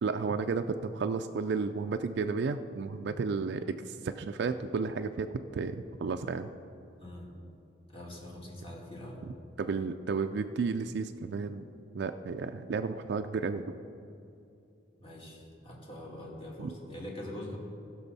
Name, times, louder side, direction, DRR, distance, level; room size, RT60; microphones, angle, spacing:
voice 1, 0.0-6.5 9.6-11.6 11.9-13.8 16.6-16.7, right 4 dB, 65° right, 7 dB, 0.4 m, -32 dB
voice 2, 7.0-7.3 7.9-9.2 15.0-17.6, left 1 dB, 30° left, -3 dB, 2.3 m, -43 dB
18.5 x 6.2 x 4.1 m, 2.6 s
head